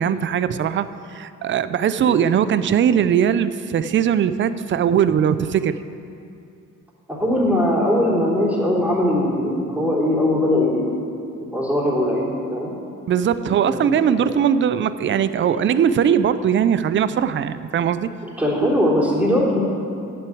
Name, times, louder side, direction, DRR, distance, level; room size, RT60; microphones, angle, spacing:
voice 1, 0.0-5.8 13.1-18.1 18.6-18.7, right 8 dB, 40° right, 14 dB, 0.5 m, -20 dB
voice 2, 7.1-10.9 11.4-12.7 13.5-14.4 18.2-19.6, left 1 dB, 5° right, -5 dB, 3.1 m, -21 dB
8.2 x 7.8 x 8.5 m, 2.6 s
cardioid pair, 90°, 30 cm